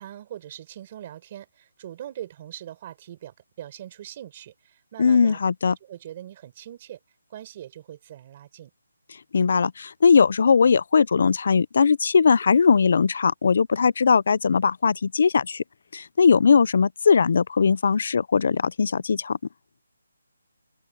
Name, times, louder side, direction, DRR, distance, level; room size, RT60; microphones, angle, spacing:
voice 1, 0.0-5.4 5.6-7.0 7.3-8.7, right 11 dB, 25° right, 4.6 m, -41 dB
voice 2, 5.0-5.8 9.3-15.6 15.9-19.4, left 5 dB, 45° left, 0.5 m, -19 dB
hypercardioid pair, 175°, 0 cm